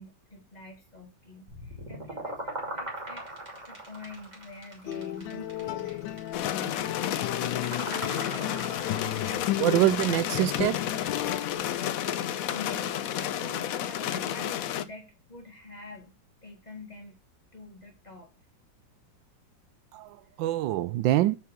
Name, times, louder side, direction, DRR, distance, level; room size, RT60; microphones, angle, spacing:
voice 1, 0.0-10.0 12.5-16.1 16.4-17.2 17.5-18.3 21.1-21.3, left 2 dB, 25° left, 2.1 m, -47 dB
sound 1, 1.5-9.6, right 1 dB, 20° right, 2.9 m, -40 dB
sound 2, 4.9-11.7, left 14 dB, 85° left, 1.3 m, -34 dB
sound 3, 6.3-14.8, left 10 dB, 65° left, 0.9 m, -31 dB
voice 2, 9.6-10.9 19.9-21.4, right 14 dB, 85° right, 1.3 m, -25 dB
6.9 x 6.0 x 6.6 m
omnidirectional pair, 2.0 m